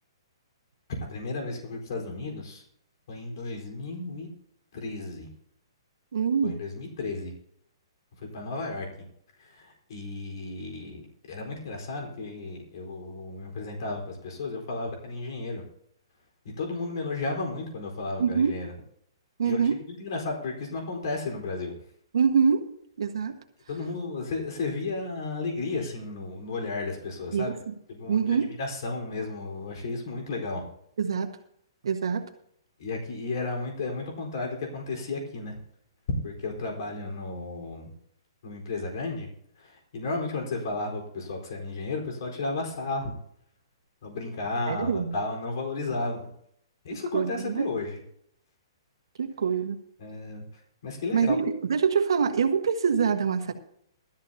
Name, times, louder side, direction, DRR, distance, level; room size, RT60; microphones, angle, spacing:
voice 1, 1.0-2.6 3.1-4.3 4.7-5.3 6.4-7.3 8.2-8.9 9.4-15.6 16.6-18.7 19.4-19.6 20.0-21.8 23.7-27.5 27.9-30.6 32.8-35.6 36.2-37.9 38.4-39.3 39.6-43.2 44.0-46.3 46.8-48.0 50.0-50.4 50.8-51.4, left 3 dB, 60° left, 0 dB, 4.2 m, -33 dB
voice 2, 6.1-6.6 18.2-18.5 19.4-19.8 22.1-22.6 23.0-23.4 27.3-27.7 28.1-28.6 31.0-31.3 31.8-32.3 44.7-45.2 46.9-47.7 49.2-49.8 51.1-53.5, right 6 dB, 75° right, 6 dB, 1.5 m, -25 dB
18.0 x 13.0 x 2.8 m, 0.69 s
hypercardioid pair, 150°, 3 cm